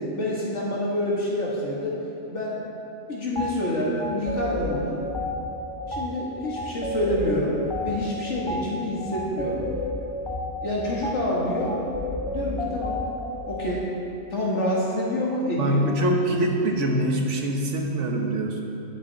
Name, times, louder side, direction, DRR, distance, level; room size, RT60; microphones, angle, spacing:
voice 1, 0.0-2.0 2.3-2.6 3.1-5.0 5.9-7.6 7.8-9.6 10.6-11.8 12.3-13.0 13.5-13.9 14.3-16.1, left 1 dB, 70° left, -5 dB, 1.9 m, -27 dB
sound 1, 3.3-3.5 4.0-13.7, left 1 dB, 30° left, 0.7 m, -31 dB
voice 2, 15.6-18.6, right 1 dB, 75° right, 1 dB, 1.5 m, -24 dB
16.5 x 7.5 x 4.0 m, 2.7 s
omnidirectional pair, 1.3 m